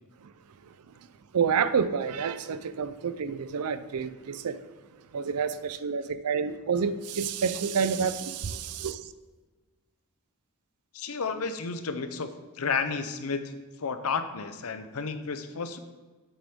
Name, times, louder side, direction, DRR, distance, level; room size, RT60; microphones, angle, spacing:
voice 1, 1.3-4.6 5.1-9.0, right 6 dB, 80° right, 13 dB, 0.5 m, -28 dB
voice 2, 10.9-12.3 12.5-13.5 13.8-15.8, left 5 dB, 70° left, 9 dB, 0.7 m, -31 dB
8.6 x 7.2 x 3.7 m, 1.3 s
head